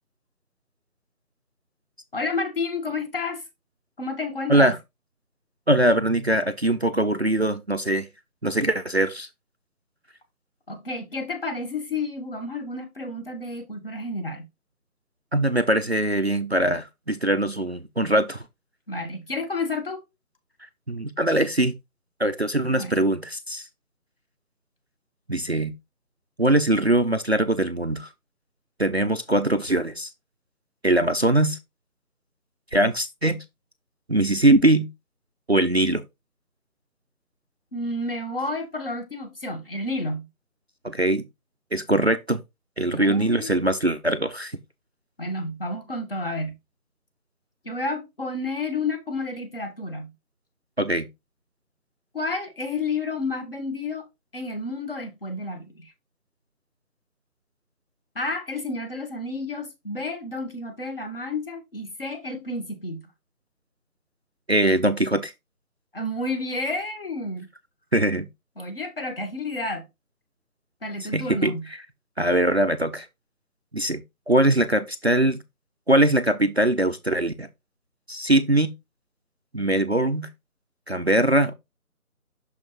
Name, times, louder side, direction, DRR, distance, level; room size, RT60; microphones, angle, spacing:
voice 1, 2.1-3.4 4.0-4.7 10.7-14.5 18.9-20.0 22.6-23.0 37.7-40.3 42.9-43.5 45.2-46.6 47.6-50.1 52.1-54.1 54.3-55.9 58.1-63.1 65.9-67.5 68.6-69.9 70.8-71.7, left 2 dB, 40° left, 1.4 m, -30 dB
voice 2, 5.7-8.1 8.4-9.3 15.3-18.4 20.9-21.7 22.2-23.7 25.3-25.7 26.4-28.1 28.8-30.1 30.8-31.6 32.7-33.4 34.1-34.9 35.5-36.0 40.8-41.2 41.7-42.4 42.8-44.5 50.8-51.1 64.5-65.3 67.9-68.3 71.1-71.6 72.2-73.1 73.7-75.4 75.9-77.5 78.1-78.7 79.5-80.3 80.9-81.5, right 1 dB, 45° right, 0.5 m, -22 dB
6.2 x 5.5 x 3.0 m
figure-of-eight pair, 165°, 45 cm